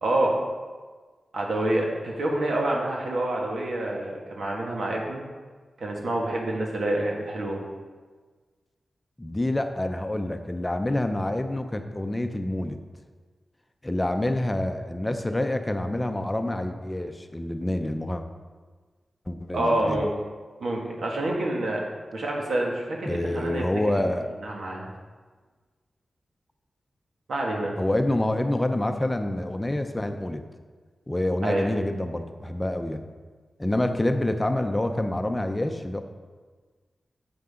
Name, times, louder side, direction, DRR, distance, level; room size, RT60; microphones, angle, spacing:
voice 1, 0.0-0.3 1.3-5.2 5.8-7.6 19.5-20.1 20.6-21.8 22.1-23.6 23.9-24.0 24.4-24.9 27.3-27.8 31.4-31.7, right 1 dB, 85° right, -1 dB, 1.8 m, -27 dB
voice 2, 9.2-12.8 13.8-18.2 19.3-20.0 23.1-24.3 27.8-30.4 31.1-33.0 33.6-36.0, left 1 dB, 15° left, 6 dB, 0.5 m, -27 dB
9.6 x 7.8 x 3.7 m, 1.4 s
wide cardioid pair, 135°, 0 cm